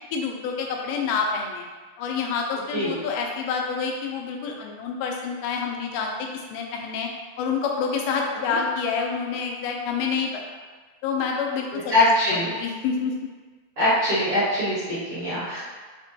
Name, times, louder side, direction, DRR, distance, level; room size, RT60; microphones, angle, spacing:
voice 1, 0.1-1.7 2.0-7.1 7.4-10.4 11.0-12.1 12.3-13.1, left 5 dB, 90° left, 1 dB, 2.5 m, -28 dB
voice 2, 11.9-12.5 13.8-15.6, left 1 dB, 60° right, -13 dB, 1.5 m, -22 dB
5.9 x 2.2 x 2.7 m, 1.4 s
omnidirectional pair, 4.3 m